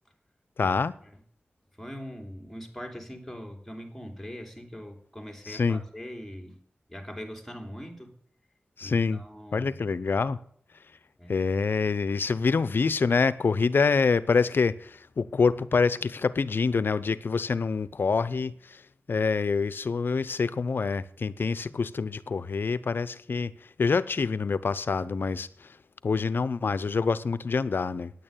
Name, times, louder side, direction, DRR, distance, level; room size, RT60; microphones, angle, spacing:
voice 1, 0.6-0.9 5.5-5.8 8.8-9.2 9.5-10.4 11.3-18.8 19.1-23.5 23.8-25.7 26.0-28.1, left 4 dB, 75° left, 0.7 m, -26 dB
voice 2, 1.8-6.6 6.9-8.1 8.8-9.8 11.2-11.3, equal, 5° left, 3.2 m, -41 dB
9.6 x 9.0 x 8.8 m
cardioid pair, 50°, 4 cm